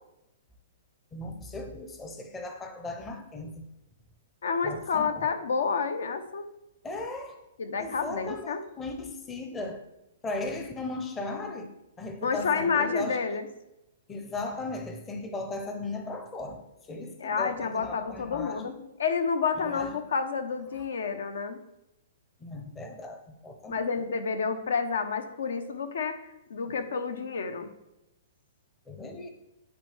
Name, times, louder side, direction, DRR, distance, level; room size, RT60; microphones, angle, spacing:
voice 1, 1.1-3.6 4.6-5.3 6.8-7.4 7.8-9.8 10.2-11.7 12.0-13.2 14.1-18.8 19.5-19.9 22.4-23.8 28.9-29.3, left 2 dB, 10° left, 6 dB, 0.5 m, -37 dB
voice 2, 4.4-6.5 7.6-8.6 12.2-13.5 17.2-18.7 19.0-21.6 23.7-26.2 26.5-27.7, left 5 dB, 85° left, 10 dB, 0.7 m, -29 dB
10.0 x 4.4 x 3.2 m, 0.90 s
hypercardioid pair, 170°, 0 cm